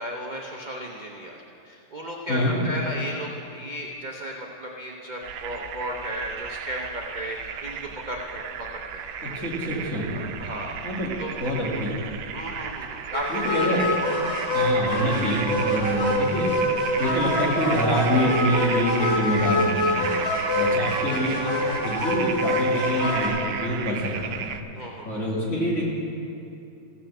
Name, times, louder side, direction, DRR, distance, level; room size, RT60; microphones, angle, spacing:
voice 1, 0.0-1.4 1.6-8.7 8.9-9.2 10.1-10.8 11.2-11.3 11.7-11.9 12.3-14.1 20.5-21.1 24.7-25.3, equal, 55° right, -1 dB, 0.5 m, -35 dB
sound 1, 5.2-24.6, right 8 dB, 80° right, 1.3 m, -35 dB
voice 2, 9.2-10.1 10.8-11.1 11.4-12.0 13.3-13.8 14.5-16.5 17.0-24.4 25.0-25.8, equal, 40° left, -5 dB, 2.6 m, -26 dB
sound 2, 13.1-23.3, left 1 dB, 80° left, 3.1 m, -25 dB
15.5 x 6.0 x 7.2 m, 2.6 s
omnidirectional pair, 2.1 m